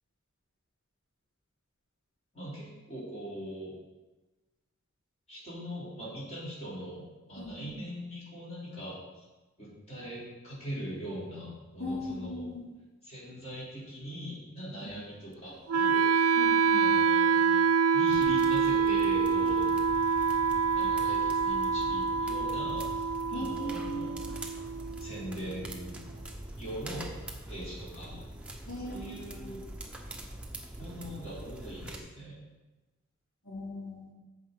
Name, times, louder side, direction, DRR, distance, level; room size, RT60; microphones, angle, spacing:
voice 1, 2.3-3.7 5.3-9.0 9.6-12.4 13.0-16.1 16.7-17.5 17.9-19.7 20.7-24.3 25.0-26.0 26.6-27.1 27.5-28.2 28.8-29.7 30.8-32.5, equal, 30° left, -8 dB, 3.2 m, -41 dB
voice 2, 7.4-7.8 11.8-12.6 14.8-14.9 16.3-16.9 23.3-24.1 28.6-29.6 33.4-34.1, left 1 dB, 80° left, -6 dB, 3.1 m, -39 dB
Wind instrument woodwind instrument, 15.7-25.7, right 6 dB, 90° right, 0.4 m, -26 dB
sound 1, 18.1-32.0, right 1 dB, 5° right, 0.8 m, -44 dB
14.5 x 5.4 x 3.8 m, 1.1 s
head